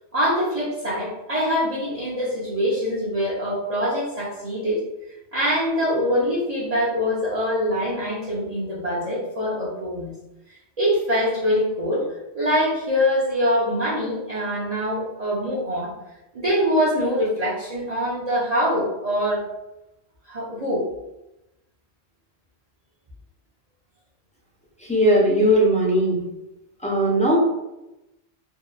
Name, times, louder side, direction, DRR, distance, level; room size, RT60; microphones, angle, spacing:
voice 1, 0.1-4.8 5.3-10.1 10.8-12.0 12.3-15.9 16.3-19.4 20.3-20.9, equal, 45° right, -9 dB, 0.6 m, -24 dB
voice 2, 24.8-26.2 26.8-27.4, right 1 dB, 10° left, -6 dB, 0.4 m, -18 dB
2.7 x 2.2 x 2.3 m, 0.95 s
omnidirectional pair, 1.1 m